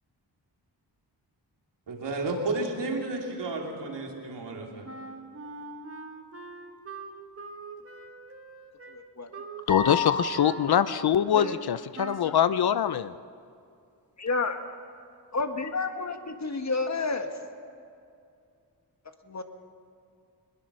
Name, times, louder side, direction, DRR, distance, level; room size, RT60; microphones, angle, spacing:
voice 1, 1.9-4.9, right 2 dB, 80° right, 0 dB, 3.2 m, -32 dB
Wind instrument woodwind instrument, 4.8-11.6 11.9-12.4, right 3 dB, 35° right, 1.6 m, -42 dB
voice 2, 8.9-9.3 11.3-11.6 12.3-12.4 14.2-14.6 15.3-17.3 19.3-19.4, left 3 dB, 40° left, 6 dB, 1.7 m, -30 dB
voice 3, 9.7-13.1, left 9 dB, 65° left, 14 dB, 0.6 m, -24 dB
sound 1, 9.7-10.7, left 4 dB, 20° left, 5.8 m, -30 dB
21.5 x 20.5 x 6.3 m, 2.4 s
wide cardioid pair, 85°, 41 cm